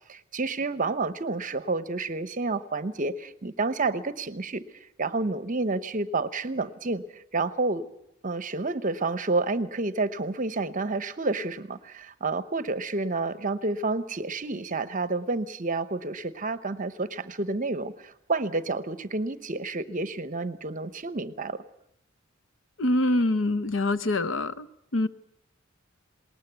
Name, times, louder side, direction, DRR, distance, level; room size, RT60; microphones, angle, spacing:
voice 1, 0.1-4.6 5.0-7.9 8.2-21.6, right 3 dB, 40° right, 0.9 m, -29 dB
voice 2, 22.8-24.7 24.9-25.1, left 2 dB, 70° left, 0.8 m, -25 dB
20.0 x 19.0 x 8.1 m
head